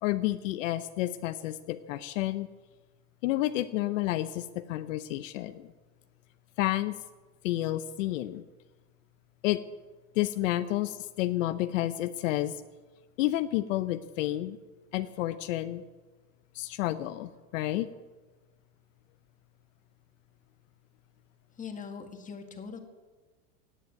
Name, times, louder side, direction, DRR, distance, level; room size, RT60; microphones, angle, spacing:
voice 1, 0.0-2.5 3.2-5.7 6.6-7.0 7.4-8.4 9.4-9.6 10.1-12.6 13.2-14.6 14.9-15.8 16.5-17.9, left 15 dB, 75° left, 12 dB, 0.8 m, -30 dB
voice 2, 21.6-22.8, left 6 dB, 20° left, 5 dB, 1.9 m, -41 dB
17.5 x 7.9 x 9.3 m, 1.3 s
supercardioid pair, 145°, 39 cm